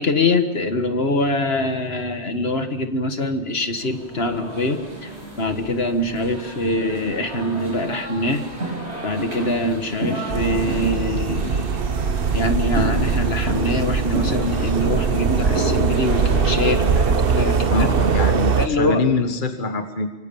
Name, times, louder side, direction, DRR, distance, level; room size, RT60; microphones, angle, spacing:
voice 1, 0.0-5.1 5.4-8.5 9.0-11.6 12.3-17.9 18.6-19.0, left 1 dB, 65° left, 7 dB, 1.9 m, -23 dB
sound 1, 3.8-18.5, right 1 dB, 90° right, 7.0 m, -32 dB
sound 2, 10.3-18.7, right 5 dB, 60° right, 1.2 m, -21 dB
voice 2, 17.7-20.1, left 3 dB, 50° left, 6 dB, 1.6 m, -24 dB
25.5 x 25.0 x 7.1 m, 1.2 s
omnidirectional pair, 1.1 m